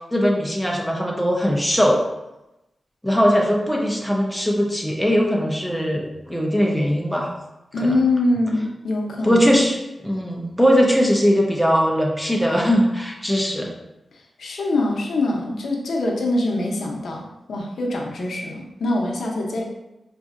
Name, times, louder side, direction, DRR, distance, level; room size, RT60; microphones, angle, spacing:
voice 1, 0.1-2.0 3.0-7.3 7.8-7.9 9.2-9.8 10.0-13.7, equal, ahead, -1 dB, 0.5 m, -20 dB
voice 2, 7.7-9.6 14.4-19.6, left 2 dB, 80° left, 0 dB, 0.6 m, -24 dB
4.0 x 2.6 x 2.4 m, 0.94 s
wide cardioid pair, 140°, 0 cm